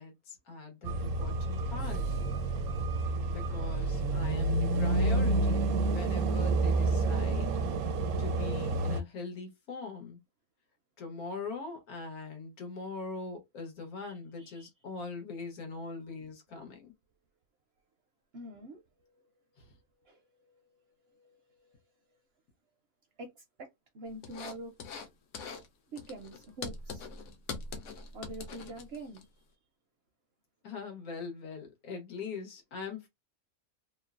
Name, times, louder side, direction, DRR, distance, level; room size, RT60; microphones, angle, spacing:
voice 1, 0.0-2.0 3.3-7.5 8.2-10.2 11.0-16.9 19.6-19.7 30.6-33.1, left 4 dB, 85° left, 1.5 m, -41 dB
sound 1, 0.8-9.0, right 2 dB, 85° right, 1.0 m, -29 dB
voice 2, 14.0-14.7 18.3-18.8 20.0-20.2 20.5-20.6 21.1-21.7 23.2-23.3 23.6-23.7 23.9-24.7 25.9-27.1 28.1-29.2, right 1 dB, 65° right, 0.6 m, -45 dB
sound 2, 24.2-25.1 25.3-25.7 26.0-29.2, left 4 dB, 65° left, 0.9 m, -42 dB
3.1 x 2.0 x 2.3 m
omnidirectional pair, 1.5 m